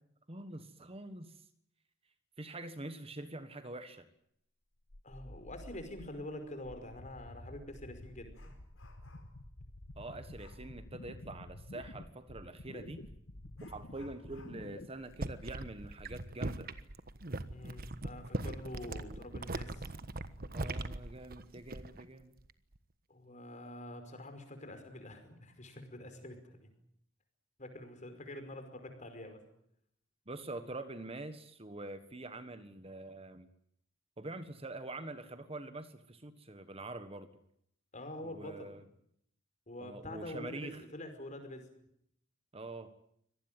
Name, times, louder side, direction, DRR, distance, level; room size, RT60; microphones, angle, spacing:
voice 1, 0.3-1.4 2.4-4.1 10.0-13.0 13.6-16.7 18.4-18.5 20.5-22.3 30.3-33.5 34.2-37.3 38.2-38.8 39.8-40.8 42.5-42.9, right 2 dB, 30° right, 11 dB, 1.4 m, -45 dB
sound 1, 4.9-14.9, left 1 dB, 70° left, 1.6 m, -50 dB
voice 2, 5.0-8.3 17.5-19.9 23.1-26.7 27.6-29.4 37.9-38.7 39.7-41.7, left 1 dB, 40° left, 7 dB, 5.2 m, -46 dB
Dog, 8.0-9.5 10.3-10.7 12.7-12.8 13.5-16.8 17.2-17.3 17.8-17.9 18.5-19.0 19.3-19.6, left 3 dB, 90° left, 5.1 m, -64 dB
sound 2, 15.0-22.1 22.4-22.8, right 2 dB, 50° right, 1.4 m, -40 dB
25.0 x 19.0 x 9.1 m, 0.72 s
head